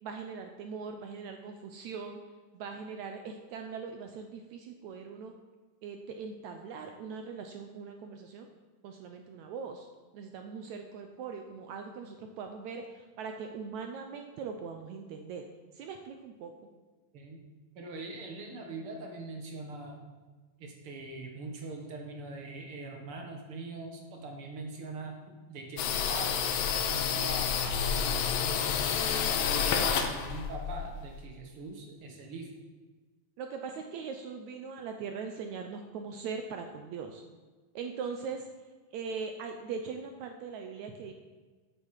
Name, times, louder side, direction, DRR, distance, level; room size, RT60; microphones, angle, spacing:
voice 1, 0.0-2.2 2.5-5.3 5.8-8.5 8.8-9.9 10.1-15.5 15.7-16.5 33.4-37.2 37.7-38.5 38.9-41.1, right 5 dB, 75° right, 5 dB, 1.7 m, -40 dB
voice 2, 17.7-20.0 20.6-25.2 25.5-26.5 26.7-28.8 29.2-32.5, right 2 dB, 50° right, 2 dB, 2.0 m, -42 dB
sound 1, 25.8-31.2, left 7 dB, 85° left, 2.6 m, -29 dB
8.5 x 8.3 x 7.3 m, 1.3 s
omnidirectional pair, 4.0 m